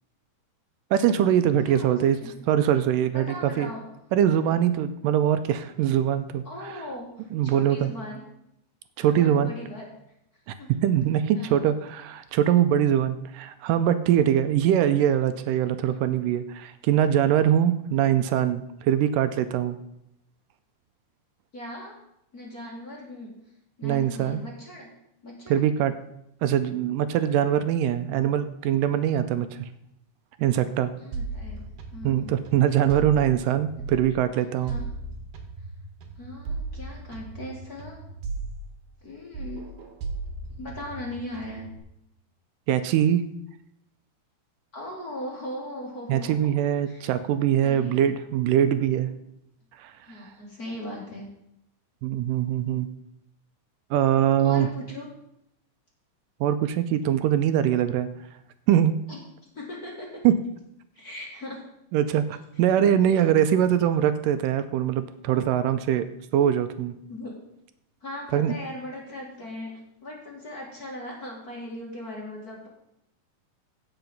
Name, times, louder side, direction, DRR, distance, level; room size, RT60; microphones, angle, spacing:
voice 1, 0.9-2.2 2.5-3.3 3.6-3.7 4.1-6.5 7.3-7.9 9.0-9.5 10.8-19.8 23.8-24.4 25.5-25.9 26.4-29.7 30.4-30.9 32.0-34.8 42.7-43.3 46.1-49.1 49.8-49.9 52.0-52.9 53.9-54.7 56.4-58.1 58.7-59.0 60.2-60.4 61.9-66.1 66.3-67.0 68.3-68.5, right 10 dB, 85° right, 11 dB, 2.2 m, -22 dB
voice 2, 1.6-2.3 3.1-3.8 6.4-8.2 9.0-9.9 10.6-10.8 11.3-11.6 21.5-21.9 22.3-23.4 23.8-24.9 25.2-25.6 31.0-32.4 34.6-34.9 36.2-38.0 39.0-39.6 40.6-41.7 44.7-46.5 46.9-47.1 47.6-48.1 50.0-51.3 54.4-55.1 59.1-59.2 59.5-60.2 60.9-61.6 67.1-67.3 68.0-72.7, left 1 dB, 30° left, -3 dB, 2.0 m, -39 dB
sound 1, 31.1-34.2 34.7-39.1 39.3-41.8, right 3 dB, 65° right, 2.6 m, -36 dB
16.0 x 5.8 x 5.3 m, 0.80 s
omnidirectional pair, 4.0 m